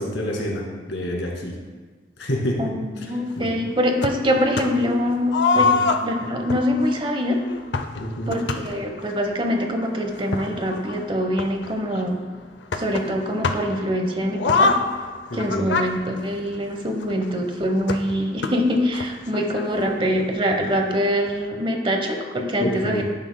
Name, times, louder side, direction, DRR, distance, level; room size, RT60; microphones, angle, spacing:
voice 1, 0.0-1.6 2.2-3.1 3.4-3.7 5.6-5.8 8.0-8.4 15.3-15.7 22.6-23.0, equal, 90° left, -1 dB, 2.0 m, -28 dB
voice 2, 2.6-7.4 8.3-12.2 12.7-14.7 15.3-23.0, equal, 30° right, 3 dB, 1.0 m, -24 dB
sound 1, 4.0-4.9 5.3-9.1 9.8-9.9 10.2-12.1 12.7-13.8 14.3-17.1 17.9-19.8 20.2-20.3 20.5-20.6 21.3-21.4, left 4 dB, 70° left, 0.5 m, -25 dB
10.0 x 10.0 x 2.2 m, 1.4 s
head